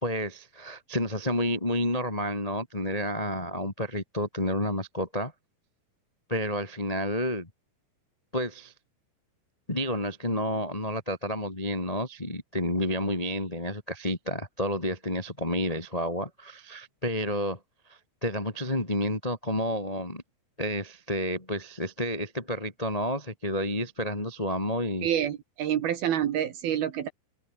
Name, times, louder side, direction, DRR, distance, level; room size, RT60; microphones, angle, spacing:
voice 1, 0.0-5.3 6.3-7.5 8.3-8.7 9.7-17.6 17.9-20.2 20.6-25.1, equal, 45° left, 0.5 m, -30 dB
voice 2, 25.0-27.1, right 10 dB, 65° right, 2.7 m, -27 dB
open air
omnidirectional pair, 5.9 m